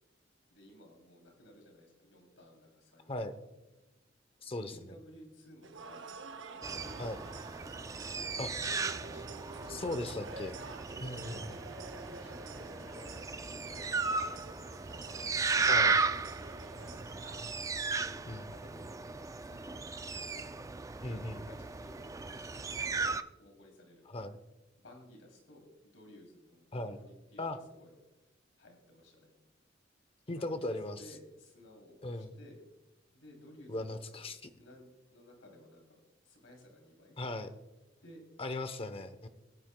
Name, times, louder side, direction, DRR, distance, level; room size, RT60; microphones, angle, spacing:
voice 1, 0.5-3.4 4.4-6.1 6.6-7.3 7.6-10.2 11.1-14.9 15.4-17.2 17.8-19.8 20.4-20.7 21.1-24.0 24.8-28.0 28.6-29.3 30.3-32.6 33.1-34.2 34.6-35.8 36.2-37.2 38.0-38.2, left 1 dB, 85° left, 2 dB, 2.9 m, -57 dB
voice 2, 4.4-5.0 7.0-7.2 8.4-8.5 9.7-10.6 11.0-11.5 15.7-16.0 18.3-18.5 21.0-21.5 24.1-24.4 26.7-27.0 27.4-27.6 30.3-31.0 32.0-32.3 33.7-34.5 37.2-37.5 38.4-39.3, left 2 dB, 30° left, 10 dB, 0.7 m, -38 dB
sound 1, 5.6-17.4, right 4 dB, 65° right, 0.7 m, -49 dB
sound 2, 6.6-23.2, right 4 dB, 15° right, 0.3 m, -35 dB
21.0 x 9.2 x 2.2 m, 1.0 s
head